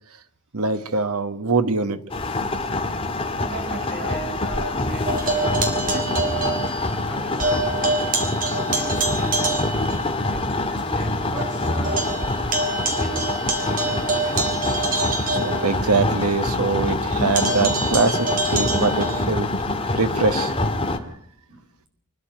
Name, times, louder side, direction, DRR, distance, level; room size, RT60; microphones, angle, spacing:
voice 1, 0.5-2.0 14.9-19.5 19.9-20.5, right 3 dB, 90° right, 11 dB, 1.4 m, -23 dB
sound 1, 2.1-21.0, left 2 dB, 25° left, 2.0 m, -25 dB
voice 2, 3.3-6.7 7.0-7.7 8.4-9.7 10.3-12.1 12.8-13.3 13.6-14.5 21.0-21.1 21.5-21.7, right 1 dB, 55° right, 1 dB, 7.8 m, -36 dB
sound 2, 5.1-7.1 7.4-10.0 10.5-10.6 11.0-11.1 11.4-16.2 17.3-19.3, right 3 dB, 40° right, 3.8 m, -26 dB
26.0 x 11.0 x 9.1 m, 0.68 s
head